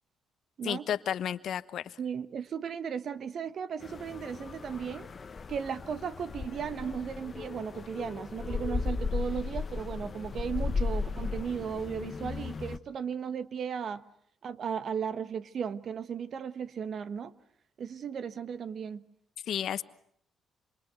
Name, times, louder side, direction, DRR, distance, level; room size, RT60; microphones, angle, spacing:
voice 1, 0.6-2.0 19.5-19.8, left 9 dB, 70° left, 1.1 m, -32 dB
voice 2, 2.0-5.1 5.5-14.0 14.4-17.3 17.8-19.0, right 7 dB, 55° right, 1.3 m, -36 dB
sound 1, 3.8-12.8, left 4 dB, 35° left, 1.3 m, -36 dB
27.0 x 27.0 x 8.1 m
cardioid pair, 90°, 0 cm